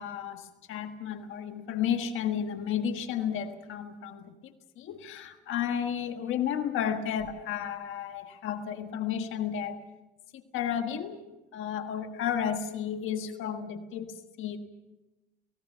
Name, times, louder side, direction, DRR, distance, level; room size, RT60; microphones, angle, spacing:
voice 1, 0.0-9.8 10.3-11.2 11.5-14.6, left 8 dB, 90° left, 6 dB, 1.5 m, -32 dB
29.5 x 18.5 x 5.7 m, 1.0 s
cardioid pair, 90°, 20 cm